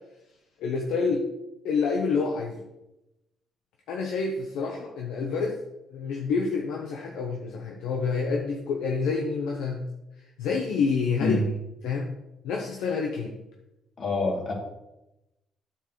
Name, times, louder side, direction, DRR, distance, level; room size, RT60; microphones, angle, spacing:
voice 1, 0.6-1.3 1.6-2.6 3.9-5.6 5.9-9.8 10.4-11.4 11.8-12.1 12.4-13.4, left 5 dB, 80° left, 1 dB, 1.0 m, -28 dB
voice 2, 14.0-14.5, left 2 dB, 55° left, -1 dB, 2.9 m, -26 dB
8.9 x 7.4 x 3.2 m, 0.92 s
supercardioid pair, 60°, 0 cm